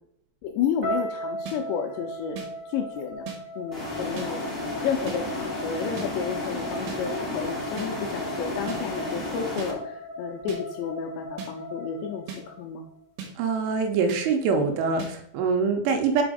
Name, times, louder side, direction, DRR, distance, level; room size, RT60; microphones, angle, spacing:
voice 1, 0.4-2.4 2.7-3.3 3.6-4.5 4.8-12.9, left 7 dB, 90° left, 3 dB, 2.5 m, -31 dB
sound 1, 0.8-13.0, equal, 30° right, 1.4 m, -38 dB
sound 2, 1.5-1.6 2.4-2.5 3.3-3.4 4.2-4.3 5.1-5.2 6.0-6.1 6.9-7.0 7.8-7.9 8.7-8.8 9.6-9.7 10.5-10.6 11.4-11.5 12.3-12.4 13.2-13.3 14.1-14.2 15.0-15.1, right 6 dB, 70° right, 2.8 m, -36 dB
sound 3, 3.7-9.7, left 1 dB, ahead, 0.5 m, -32 dB
voice 2, 13.4-16.2, right 5 dB, 85° right, 5 dB, 3.2 m, -24 dB
6.1 x 4.9 x 5.0 m, 0.73 s
omnidirectional pair, 5.6 m